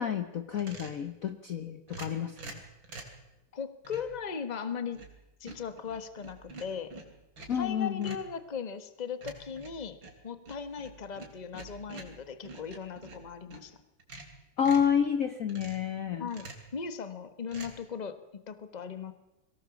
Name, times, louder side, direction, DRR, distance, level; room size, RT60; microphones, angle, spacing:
voice 1, 0.0-2.6 7.5-8.2 14.6-16.3, left 8 dB, 50° left, 9 dB, 1.2 m, -29 dB
sound 1, 0.6-1.0 1.9-3.2 3.8-4.2 4.7-5.2 5.5-7.7 8.0-8.3 9.2-13.7 14.0-14.9 15.5-15.9 16.3-16.7 17.5-17.7, right 3 dB, 75° right, 4.0 m, -47 dB
voice 2, 3.5-5.0 5.4-6.9 7.5-10.0 10.2-13.8 16.2-19.1, left 6 dB, 25° left, 11 dB, 1.2 m, -38 dB
22.5 x 17.5 x 7.1 m, 0.96 s
omnidirectional pair, 2.1 m